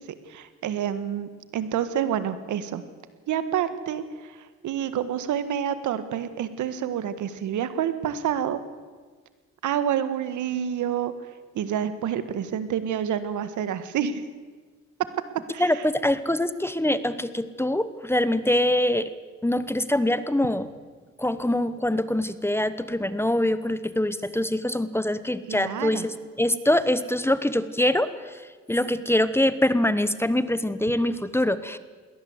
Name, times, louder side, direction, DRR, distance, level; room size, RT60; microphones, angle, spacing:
voice 1, 0.2-2.8 3.3-8.6 9.6-11.1 11.5-14.2 15.5-15.9 25.5-26.1, right 9 dB, 80° right, 12 dB, 1.6 m, -28 dB
voice 2, 15.6-19.1 19.4-20.7 21.2-28.3 28.7-31.8, left 1 dB, 10° left, 14 dB, 1.1 m, -24 dB
21.5 x 18.0 x 8.1 m, 1.4 s
cardioid pair, 90°, 30 cm